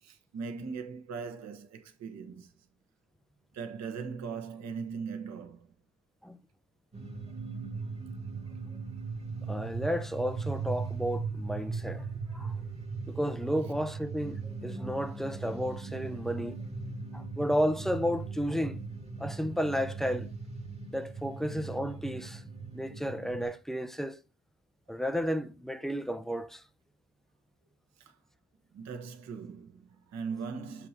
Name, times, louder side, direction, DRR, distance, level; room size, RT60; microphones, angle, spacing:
voice 1, 0.0-2.5 3.5-5.7 28.0-28.2 28.7-30.9, right 5 dB, 60° right, 1.2 m, -40 dB
sound 1, 6.9-23.4, right 4 dB, 20° right, 1.3 m, -38 dB
voice 2, 9.5-12.1 12.3-12.6 13.0-16.6 17.1-18.8 19.2-20.3 20.9-22.4 22.7-24.2 24.9-26.6, equal, ahead, 0.3 m, -32 dB
7.4 x 2.9 x 4.5 m
cardioid pair, 120°, 30 cm